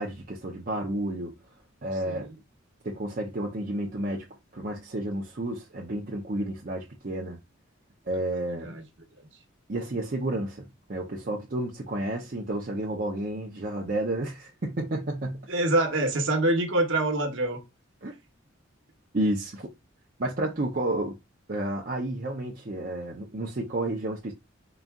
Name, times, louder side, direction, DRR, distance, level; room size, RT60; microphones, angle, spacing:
voice 1, 0.0-1.3 1.8-2.3 2.8-4.3 4.5-7.4 8.1-8.8 9.7-15.5 18.0-18.1 19.1-19.7 20.2-21.2 21.5-24.3, right 1 dB, 45° right, 0.6 m, -31 dB
voice 2, 2.1-2.4 8.5-8.8 15.5-17.6, right 2 dB, 65° right, 1.0 m, -25 dB
4.0 x 2.4 x 3.5 m
head